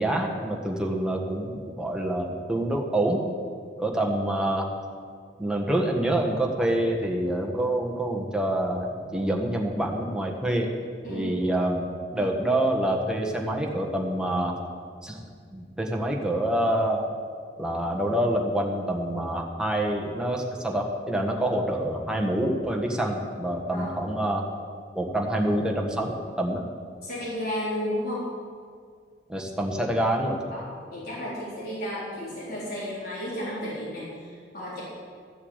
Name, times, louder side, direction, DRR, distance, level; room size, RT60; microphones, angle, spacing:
voice 1, 0.0-3.2 3.8-4.7 5.4-10.7 11.1-11.8 12.1-14.5 15.0-15.2 15.5-17.0 17.6-24.4 24.9-26.6 29.3-30.4, right 1 dB, 5° right, -1 dB, 1.4 m, -26 dB
voice 2, 27.0-28.2 30.5-34.8, equal, 55° left, -9 dB, 4.3 m, -33 dB
14.0 x 7.1 x 8.2 m, 2.1 s
head